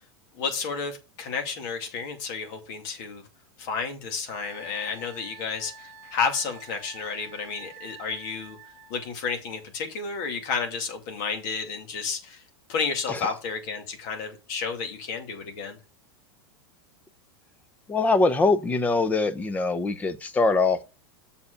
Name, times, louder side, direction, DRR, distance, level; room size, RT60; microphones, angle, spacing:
voice 1, 0.3-3.2 3.6-8.6 8.9-12.4 12.7-15.8, left 5 dB, 50° left, 2.4 m, -31 dB
Wind instrument woodwind instrument, 4.3-9.1, right 6 dB, 45° right, 1.3 m, -48 dB
voice 2, 17.9-20.8, left 3 dB, 10° left, 0.6 m, -23 dB
7.0 x 4.7 x 6.5 m
supercardioid pair, 160°, 13 cm